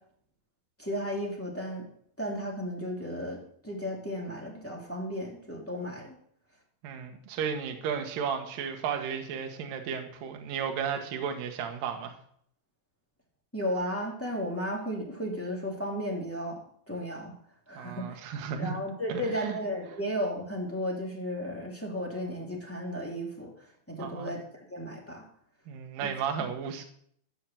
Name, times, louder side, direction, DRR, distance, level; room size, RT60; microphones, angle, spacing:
voice 1, 0.8-1.9 2.2-3.4 3.6-6.2 13.5-16.6 16.9-17.3 17.7-18.2 18.5-23.5 23.9-24.4 24.7-25.2 26.0-26.1, equal, 5° left, -2 dB, 1.8 m, -34 dB
voice 2, 6.8-12.1 17.7-18.8 19.1-19.6 24.0-24.4 25.7-26.9, right 7 dB, 60° right, 4 dB, 2.7 m, -34 dB
15.0 x 6.5 x 7.7 m, 0.65 s
omnidirectional pair, 5.6 m